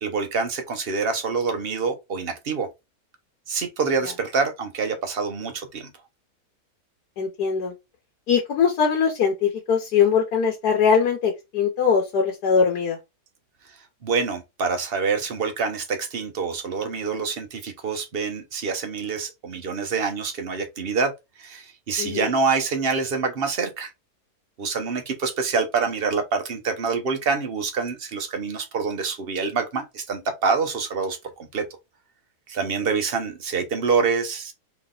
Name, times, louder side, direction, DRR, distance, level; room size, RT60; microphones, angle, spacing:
voice 1, 0.0-2.7 3.5-5.9 14.0-21.1 21.4-23.9 24.6-31.6 32.5-34.5, right 5 dB, 40° right, 1.0 m, -26 dB
voice 2, 7.2-7.7 8.3-13.0 22.0-22.3, left 6 dB, 75° left, 1.5 m, -21 dB
3.9 x 3.4 x 3.8 m
omnidirectional pair, 1.7 m